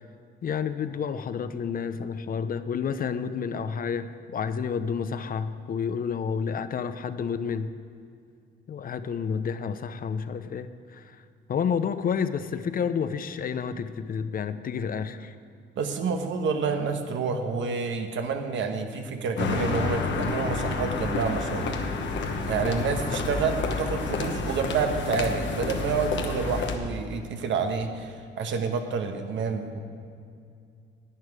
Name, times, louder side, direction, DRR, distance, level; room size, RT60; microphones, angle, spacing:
voice 1, 0.4-7.7 8.7-11.2 11.5-15.4, left 6 dB, 45° left, 12 dB, 0.6 m, -30 dB
voice 2, 15.8-21.8 22.5-29.8, right 5 dB, 70° right, 6 dB, 1.1 m, -28 dB
sound 1, 19.4-26.8, left 4 dB, 65° left, 1.0 m, -29 dB
11.0 x 9.5 x 4.8 m, 2.4 s
cardioid pair, 90°, 20 cm